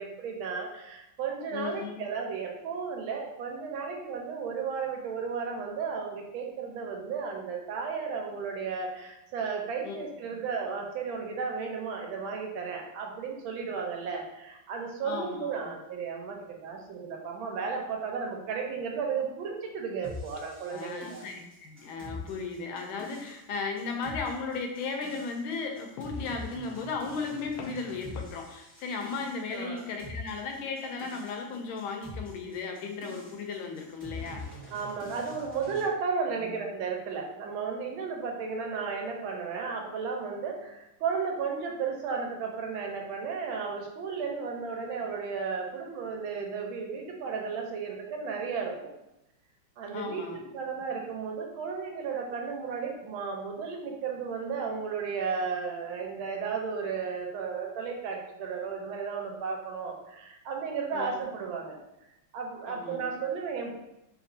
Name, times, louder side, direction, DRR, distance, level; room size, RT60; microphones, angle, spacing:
voice 1, 0.0-21.2 29.5-29.8 34.7-48.9 49.8-61.8 62.3-63.8, right 5 dB, 90° right, 1 dB, 1.4 m, -34 dB
voice 2, 1.5-2.1 9.8-10.1 15.0-15.6 20.7-34.5 36.4-36.5 49.9-50.4 60.9-61.1 62.7-63.1, left 4 dB, 90° left, 3 dB, 1.4 m, -36 dB
sound 1, 20.0-35.9, left 2 dB, 15° right, 1.3 m, -44 dB
3.4 x 2.9 x 2.6 m, 0.88 s
omnidirectional pair, 2.2 m